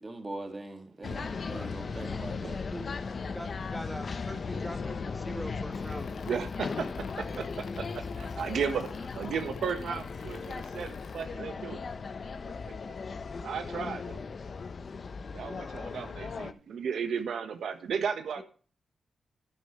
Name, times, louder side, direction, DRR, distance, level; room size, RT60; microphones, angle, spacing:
voice 1, 0.0-2.6, right 2 dB, 30° right, 5 dB, 2.3 m, -41 dB
sound 1, 1.0-16.5, left 5 dB, 50° left, 0.8 m, -37 dB
voice 2, 3.3-6.3 18.4-18.5, equal, ahead, 7 dB, 1.4 m, -42 dB
sound 2, 5.7-11.2, left 6 dB, 80° left, 1.5 m, -51 dB
voice 3, 6.3-6.9 7.2-11.8 12.8-12.9 13.4-14.2 15.3-18.4, right 6 dB, 80° right, 7 dB, 1.3 m, -34 dB
10.0 x 9.7 x 3.2 m, 0.39 s
cardioid pair, 75°, 0 cm